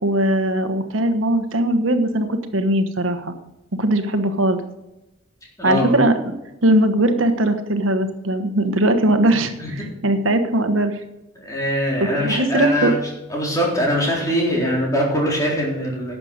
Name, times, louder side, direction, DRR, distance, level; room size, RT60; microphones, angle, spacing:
voice 1, 0.0-3.3 3.8-4.6 5.6-6.1 6.6-11.0 12.0-13.0, right 1 dB, 90° right, 7 dB, 1.2 m, -19 dB
voice 2, 5.6-6.0 9.6-9.7 11.4-13.0 13.3-16.1, equal, 15° left, -3 dB, 3.9 m, -22 dB
12.0 x 7.5 x 6.5 m, 0.97 s
head